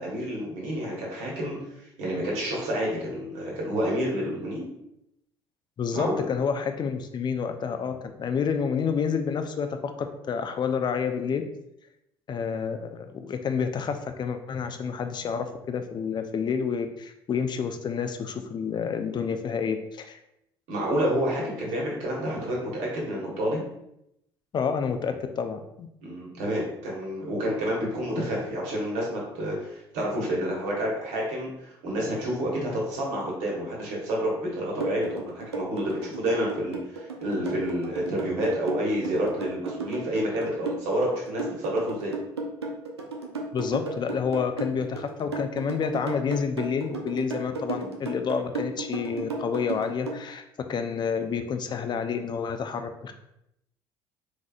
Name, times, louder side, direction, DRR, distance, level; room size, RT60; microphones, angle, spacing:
voice 1, 0.0-4.7 5.9-6.2 20.7-23.6 26.0-42.1, equal, 65° right, -3 dB, 1.5 m, -29 dB
voice 2, 5.8-11.4 12.3-20.2 23.1-23.2 24.5-25.9 43.5-53.1, left 6 dB, 35° left, 7 dB, 0.5 m, -29 dB
sound 1, 34.8-50.2, right 3 dB, 85° right, 0.5 m, -34 dB
4.1 x 3.5 x 2.3 m, 0.80 s
figure-of-eight pair, 55°, 13 cm